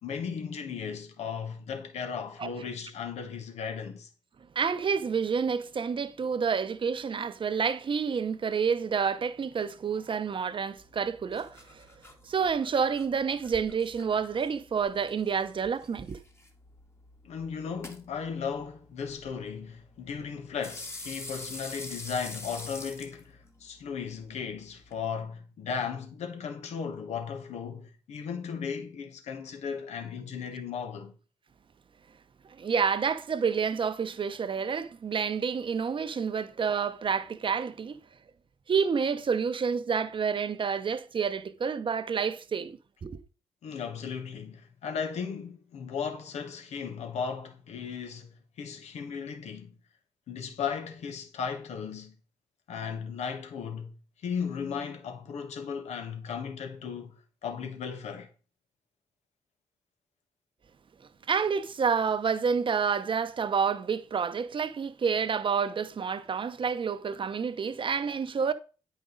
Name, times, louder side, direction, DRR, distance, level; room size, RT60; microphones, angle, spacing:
voice 1, 0.0-4.1 17.2-31.1 43.6-49.7 50.3-52.1 52.7-53.9 54.2-58.3, left 6 dB, 80° left, 1.4 m, -36 dB
voice 2, 4.5-11.9 12.2-16.2 32.6-38.0 38.7-43.2 61.3-68.5, right 6 dB, 50° right, 0.8 m, -29 dB
sound 1, 10.8-25.0, left 2 dB, 20° left, 1.5 m, -47 dB
9.2 x 5.1 x 3.9 m
supercardioid pair, 55°, 11 cm